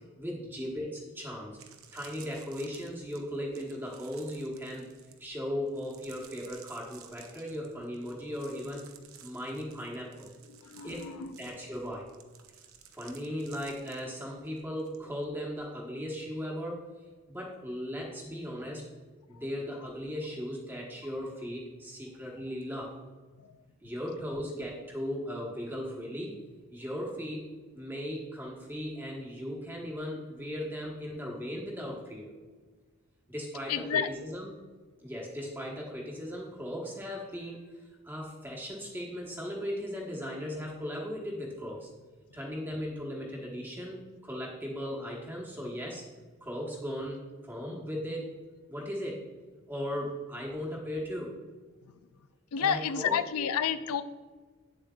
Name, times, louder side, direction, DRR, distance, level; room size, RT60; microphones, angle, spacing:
voice 1, 0.2-1.6 1.9-4.9 5.2-8.9 9.2-10.3 10.8-11.1 11.4-12.1 12.9-16.8 17.3-18.8 19.3-23.0 23.8-26.3 26.7-27.4 27.7-32.3 33.3-34.5 35.0-41.9 42.3-46.1 46.4-48.3 48.7-49.3 49.7-51.3 52.6-53.4, equal, 10° right, -3 dB, 1.1 m, -37 dB
sound 1, 1.5-15.0 15.2-15.6, right 9 dB, 70° right, 0.7 m, -55 dB
voice 2, 10.5-11.4 19.3-19.4 23.4-23.5 33.7-34.1 51.8-51.9 52.5-54.0, left 7 dB, 80° left, 12 dB, 0.4 m, -30 dB
9.2 x 7.3 x 2.3 m, 1.4 s
head